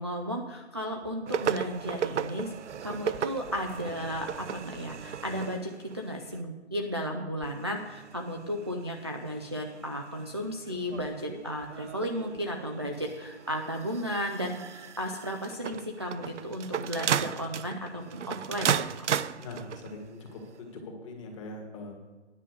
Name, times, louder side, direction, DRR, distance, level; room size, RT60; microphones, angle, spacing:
voice 1, 0.0-2.6 2.8-19.1, equal, 25° right, 1 dB, 0.3 m, -34 dB
sound 1, 1.3-6.4 7.4-20.1 20.8-20.9, right 8 dB, 85° right, 0.5 m, -36 dB
voice 2, 19.4-21.9, left 2 dB, 25° left, 2 dB, 1.8 m, -42 dB
10.0 x 5.3 x 8.2 m, 1.3 s
hypercardioid pair, 155°, 34 cm